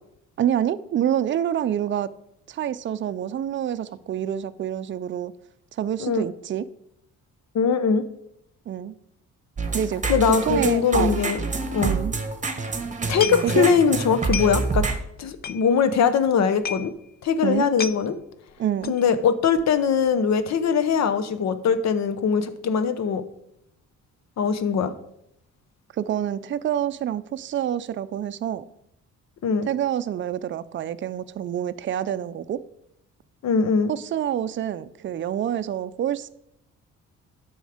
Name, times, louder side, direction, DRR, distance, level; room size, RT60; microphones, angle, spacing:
voice 1, 0.4-2.1 2.5-5.3 5.7-6.7 8.7-9.0 9.7-10.0 10.3-11.3 11.8-12.1 13.4-13.7 17.4-17.7 18.6-19.0 25.9-28.6 29.7-32.6 33.9-36.3, right 10 dB, 40° right, 13 dB, 0.5 m, -27 dB
voice 2, 7.5-8.0 10.1-11.4 11.7-11.9 13.1-14.8 15.2-16.9 17.2-18.2 18.9-23.2 24.4-24.9 29.4-29.7 33.4-33.9, left 6 dB, 60° left, 11 dB, 0.9 m, -21 dB
sound 1, 9.6-15.0, right 4 dB, 25° right, 1.3 m, -27 dB
sound 2, 13.2-13.8 14.1-14.8 15.1-15.2 15.4-16.0 16.3-16.4 16.6-16.9 17.3-17.4 17.6-18.0 18.8-19.1 19.5-19.8 20.1-20.2, left 7 dB, 35° left, 0.4 m, -32 dB
9.1 x 6.3 x 5.0 m, 0.78 s
cardioid pair, 90°, 30 cm